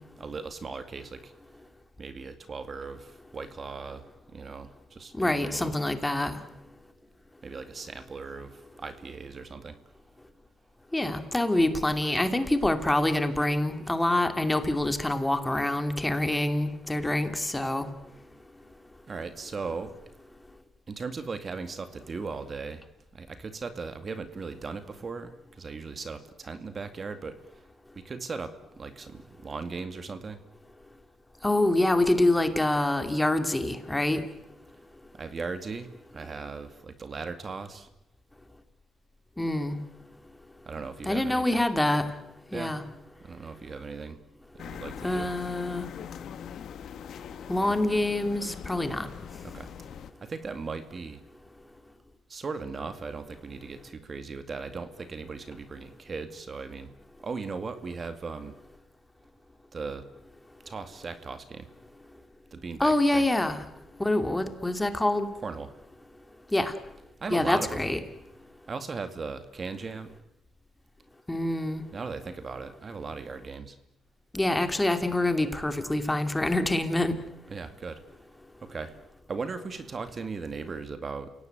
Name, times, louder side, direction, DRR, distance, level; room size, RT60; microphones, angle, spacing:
voice 1, 0.2-1.3 2.0-5.7 7.4-9.8 19.1-19.9 20.9-22.9 23.1-27.6 28.0-30.4 35.1-37.9 40.7-41.6 42.5-42.8 43.2-44.2 44.5-45.3 47.7-47.8 49.4-51.2 52.3-56.9 57.2-58.5 59.7-60.0 60.7-61.7 62.5-63.3 65.4-65.7 67.2-67.8 68.7-70.2 71.9-73.8 77.5-78.0 78.6-79.0 79.3-81.3, right 4 dB, 40° right, 10 dB, 2.2 m, -38 dB
voice 2, 5.1-6.4 10.9-17.9 31.4-34.2 39.4-39.8 41.0-42.1 42.5-42.8 45.0-45.9 47.5-49.1 62.8-63.6 64.0-65.3 66.5-66.7 67.3-68.0 71.3-71.8 74.3-77.2, left 1 dB, 10° left, 8 dB, 2.6 m, -26 dB
sound 1, 44.6-50.1, left 8 dB, 70° left, 1.3 m, -42 dB
29.0 x 17.5 x 9.4 m, 0.85 s
cardioid pair, 90°, 0 cm